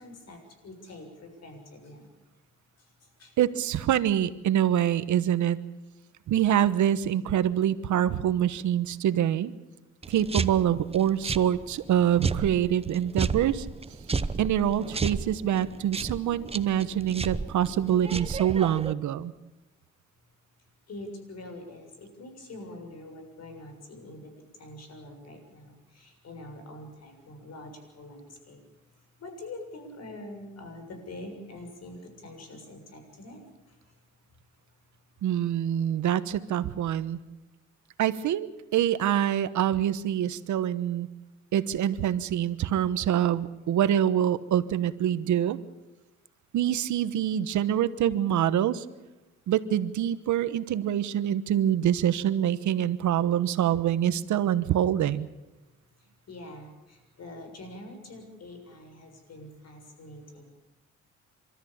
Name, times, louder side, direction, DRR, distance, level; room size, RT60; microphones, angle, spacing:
voice 1, 0.0-2.1 2.8-3.4 20.9-28.6 29.2-34.0 56.0-60.5, left 1 dB, 55° left, 5 dB, 6.9 m, -45 dB
voice 2, 3.4-5.6 6.3-9.5 10.1-13.7 14.4-19.3 35.2-37.2 38.0-41.1 41.5-45.6 46.5-48.8 49.5-55.3, right 10 dB, 75° right, 14 dB, 1.2 m, -25 dB
sound 1, 10.0-18.9, right 4 dB, 20° right, 0.9 m, -33 dB
28.5 x 13.5 x 8.7 m, 1.0 s
cardioid pair, 90°, 30 cm